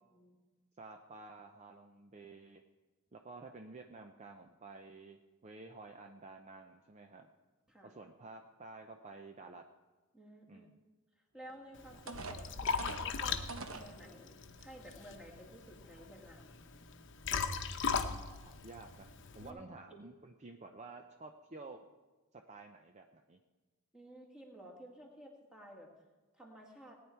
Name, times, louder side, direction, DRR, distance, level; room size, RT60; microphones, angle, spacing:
voice 1, 0.8-2.6 3.1-7.3 7.8-9.6 10.5-10.7 18.0-19.1 19.3-21.8 22.3-23.4, right 3 dB, 30° right, 5 dB, 0.5 m, -52 dB
voice 2, 10.1-10.7 11.3-13.4 13.7-16.6 19.4-19.6 23.9-25.9 26.3-27.0, right 1 dB, 5° right, -1 dB, 1.9 m, -54 dB
sound 1, 11.5-11.6 12.1-13.9 14.6-14.7 15.2-15.4, right 3 dB, 65° right, 1.0 m, -45 dB
Liquid, 11.7-19.5, left 5 dB, 55° left, 0.9 m, -39 dB
18.5 x 9.6 x 4.5 m, 1.3 s
head